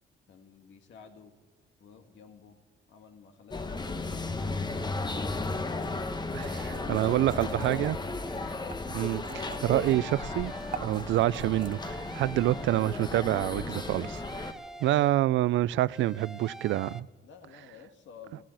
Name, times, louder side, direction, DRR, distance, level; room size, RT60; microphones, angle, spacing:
voice 1, 0.3-1.3 1.8-2.6 2.9-5.9 6.3-8.0 17.2-18.4, left 5 dB, 70° left, 1.8 m, -52 dB
sound 1, 3.5-14.5, left 3 dB, 20° left, 1.0 m, -35 dB
sound 2, 5.8-5.9 6.4-8.2 8.6-10.1 10.5-11.7, right 7 dB, 45° right, 0.7 m, -42 dB
voice 2, 6.9-8.0 8.9-10.5 10.8-14.5 14.8-17.1, right 15 dB, 75° right, 0.4 m, -27 dB
sound 3, 8.3-8.8 9.4-11.2 11.5-13.3 13.7-15.5 15.9-17.0, right 1 dB, 5° right, 0.5 m, -46 dB
15.5 x 11.5 x 7.6 m
cardioid pair, 90°, 20 cm